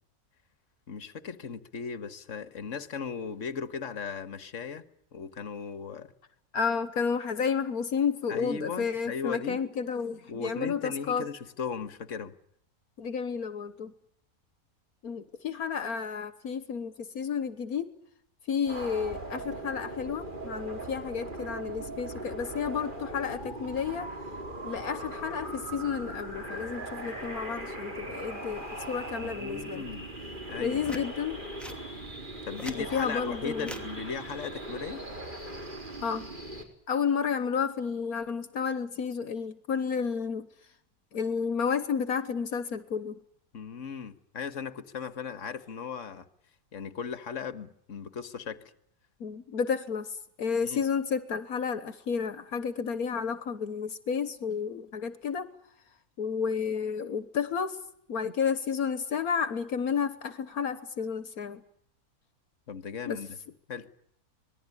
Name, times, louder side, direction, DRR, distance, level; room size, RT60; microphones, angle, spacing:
voice 1, 0.9-4.8 5.1-6.1 8.3-9.6 10.3-12.3 29.2-30.1 30.5-31.0 32.5-35.0 43.5-46.3 46.7-48.6 50.6-50.8 62.7-63.4 63.7-63.9, left 6 dB, 55° left, 12 dB, 1.8 m, -37 dB
voice 2, 6.5-11.3 13.0-13.9 15.0-17.9 18.5-24.1 24.6-29.8 30.6-31.4 32.8-33.8 36.0-36.3 36.9-40.5 41.1-43.2 49.2-55.5 56.2-57.8 58.1-61.6 63.1-63.2, left 6 dB, 75° left, 13 dB, 1.7 m, -31 dB
sound 1, 18.6-36.6, right 1 dB, 30° right, 4.7 m, -39 dB
sound 2, 30.8-31.1 31.6-31.8 32.4-32.8 33.6-33.9 35.2-35.4, equal, ahead, 2.5 m, -42 dB
26.0 x 20.0 x 9.9 m, 0.70 s
omnidirectional pair, 1.6 m